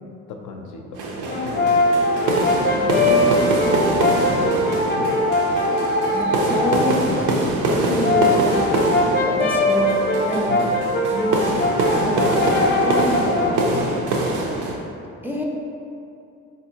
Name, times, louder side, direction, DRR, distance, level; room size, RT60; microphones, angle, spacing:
voice 1, 0.3-1.8 3.8-4.2 4.9-5.3 6.7-6.9 10.5-10.7 13.6-13.9, left 4 dB, 80° left, 2 dB, 0.5 m, -36 dB
sound 1, 0.9-14.8, right 2 dB, 85° right, 0.5 m, -24 dB
Brass instrument, 1.3-6.9 7.8-13.6, left 1 dB, 40° left, 0.6 m, -21 dB
voice 2, 2.7-4.2 6.1-7.3 7.6-8.6 9.2-10.8 11.1-11.7 12.0-13.6 15.2-15.4, equal, 5° right, -3 dB, 0.3 m, -28 dB
3.6 x 2.5 x 2.8 m, 2.6 s
cardioid pair, 90°, 30 cm